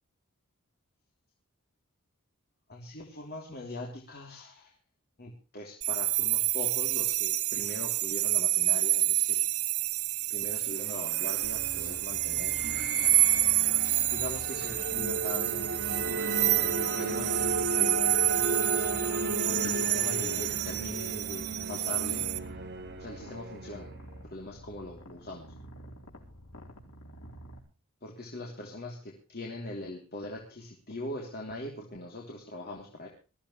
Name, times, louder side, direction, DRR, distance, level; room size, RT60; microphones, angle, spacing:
voice 1, 2.7-4.7 5.2-9.4 10.3-12.6 13.8-15.7 16.3-18.0 19.4-22.3 23.0-23.9 24.3-25.5 28.0-33.1, left 1 dB, 45° left, -1 dB, 3.3 m, -41 dB
sound 1, 5.8-22.4, right 16 dB, 85° right, 1.6 m, -28 dB
sound 2, 10.5-24.2, right 2 dB, 50° right, 3.0 m, -35 dB
Purr, 11.4-27.6, right 1 dB, 90° left, 4.6 m, -48 dB
21.0 x 15.0 x 3.2 m, 0.34 s
head